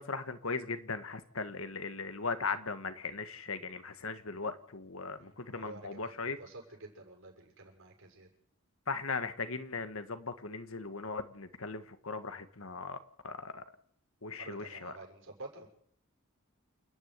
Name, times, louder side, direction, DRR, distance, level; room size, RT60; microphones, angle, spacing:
voice 1, 0.0-6.4 8.9-13.0 13.2-13.6 14.2-14.9, left 4 dB, 70° left, 10 dB, 1.7 m, -38 dB
voice 2, 5.2-6.1 6.4-8.3 14.4-15.7, right 2 dB, 65° right, 1 dB, 6.7 m, -49 dB
28.5 x 10.0 x 9.6 m, 0.65 s
head